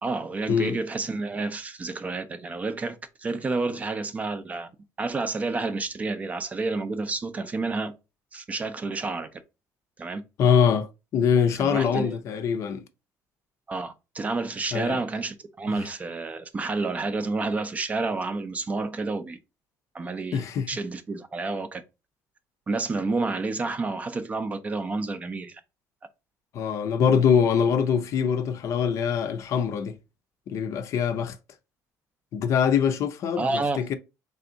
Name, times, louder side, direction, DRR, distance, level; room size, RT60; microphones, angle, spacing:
voice 1, 0.0-4.7 5.0-7.9 8.3-9.4 10.0-10.2 11.6-12.1 13.7-19.4 19.9-21.8 22.7-25.6 33.4-33.9, right 3 dB, 20° right, 0.4 m, -30 dB
voice 2, 10.4-12.8 14.7-15.0 20.3-20.7 26.5-30.0 30.5-31.4 32.3-34.0, left 7 dB, 50° left, 0.5 m, -23 dB
3.4 x 2.6 x 3.8 m
cardioid pair, 140°, 6 cm